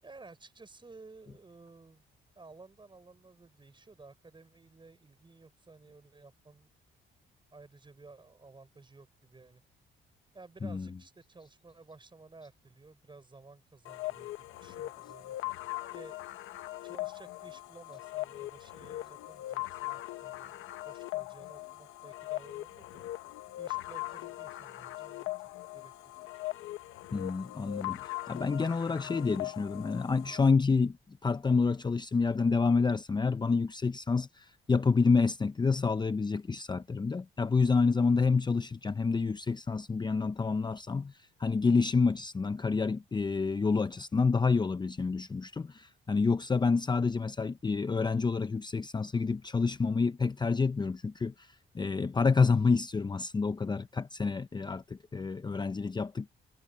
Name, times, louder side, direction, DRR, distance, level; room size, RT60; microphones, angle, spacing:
voice 1, 0.0-2.1 2.4-6.7 7.5-9.6 10.3-15.4 15.9-16.5 16.8-23.1 23.6-25.3 25.7-25.9, right 3 dB, 25° right, 6.0 m, -54 dB
sound 1, 13.8-30.4, left 17 dB, 90° left, 1.0 m, -40 dB
voice 2, 27.1-31.0 31.2-56.3, left 4 dB, 20° left, 0.6 m, -28 dB
cardioid pair, 90°, 20 cm